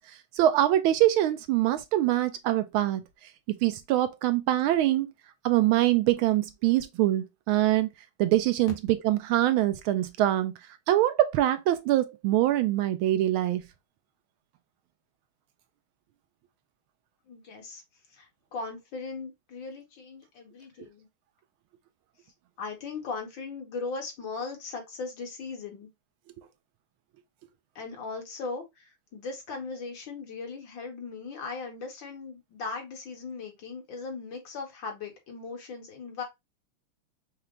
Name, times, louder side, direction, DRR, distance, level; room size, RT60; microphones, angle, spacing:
voice 1, 0.0-3.0 3.5-5.1 5.4-7.9 8.2-10.5 10.9-13.6, right 14 dB, 75° right, 1.3 m, -24 dB
voice 2, 17.3-17.8 18.1-21.1 22.6-25.9 27.8-36.2, left 4 dB, 60° left, 2.0 m, -38 dB
5.6 x 2.1 x 3.7 m
omnidirectional pair, 2.4 m